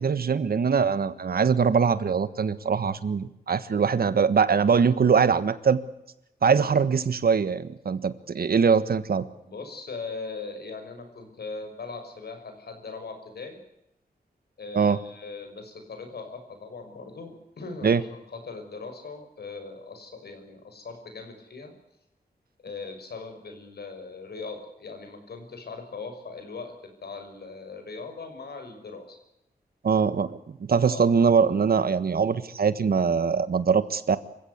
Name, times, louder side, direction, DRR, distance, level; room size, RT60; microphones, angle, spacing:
voice 1, 0.0-5.8 6.4-9.3 14.7-15.0 17.8-18.0 29.8-34.2, right 6 dB, 70° right, 14 dB, 1.5 m, -22 dB
voice 2, 9.4-13.6 14.6-21.7 22.6-29.2 30.8-31.0, left 4 dB, 80° left, 6 dB, 6.1 m, -40 dB
27.0 x 16.0 x 8.2 m, 0.84 s
wide cardioid pair, 130°, 16 cm